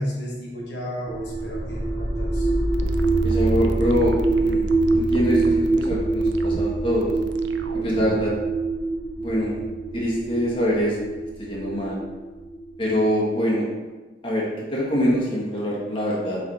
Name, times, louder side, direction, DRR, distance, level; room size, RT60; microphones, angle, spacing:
voice 1, 0.0-2.5, equal, 60° left, -4 dB, 1.1 m, -32 dB
sound 1, 1.1-12.9, right 3 dB, 20° right, 0.7 m, -24 dB
sound 2, 2.7-8.3, right 3 dB, 70° right, 0.5 m, -37 dB
voice 2, 3.2-4.7 4.9-7.1 7.7-8.3 9.2-9.6 9.9-11.0 11.4-12.0 12.8-13.7 14.2-16.4, equal, 25° left, -5 dB, 1.3 m, -24 dB
7.0 x 3.4 x 4.2 m, 1.2 s
head